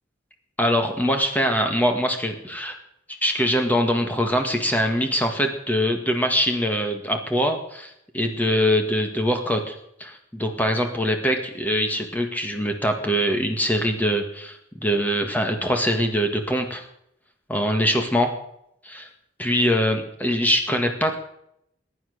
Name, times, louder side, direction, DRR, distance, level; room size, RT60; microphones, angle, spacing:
voice 1, 0.6-2.8 3.1-16.8 17.5-18.3 18.8-19.1 19.4-21.2, equal, 10° left, 4 dB, 1.8 m, -23 dB
20.5 x 10.0 x 6.6 m, 0.76 s
head